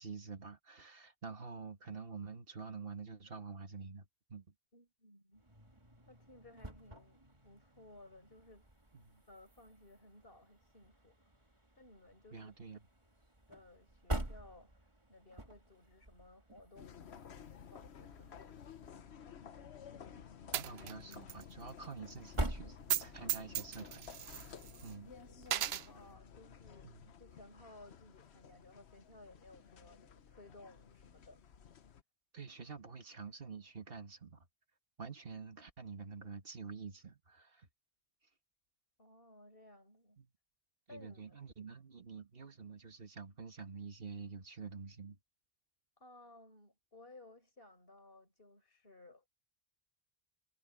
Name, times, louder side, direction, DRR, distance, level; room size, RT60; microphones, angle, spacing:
voice 1, 0.0-4.5 8.9-9.2 12.3-12.8 20.5-24.1 24.3-24.5 24.8-25.1 26.8-27.1 32.3-34.4 35.0-37.7 40.2-40.3 40.9-45.2, right 5 dB, 60° right, 2.0 m, -48 dB
voice 2, 4.7-5.4 6.1-8.6 9.3-12.5 13.1-18.7 25.9-26.9 27.2-31.5 39.0-40.2 40.9-41.5 46.0-49.3, left 2 dB, 60° left, 6.2 m, -59 dB
sound 1, 5.3-23.4, right 1 dB, 30° right, 2.6 m, -47 dB
sound 2, 16.8-32.0, left 7 dB, 85° left, 1.2 m, -54 dB
Coin (dropping), 20.5-21.4 21.7-21.8 22.8-23.0 23.3-24.9 25.4-25.9, right 11 dB, 80° right, 0.9 m, -36 dB
omnidirectional pair, 1.1 m